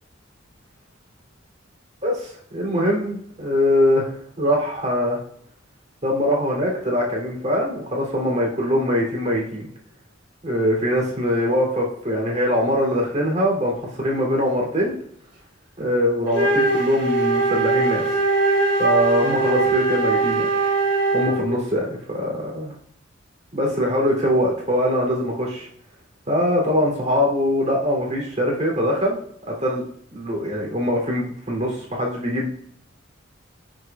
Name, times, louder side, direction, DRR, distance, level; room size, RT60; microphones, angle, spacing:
voice 1, 2.5-5.2 6.0-9.7 10.4-14.9 15.8-18.1 18.8-20.5 21.1-22.7 23.5-25.7 26.3-29.2 29.5-29.8 30.1-32.5, equal, 35° right, -1 dB, 3.1 m, -22 dB
Wind instrument woodwind instrument, 16.3-21.5, right 2 dB, 60° right, 3.6 m, -21 dB
16.0 x 6.6 x 2.4 m, 0.66 s
head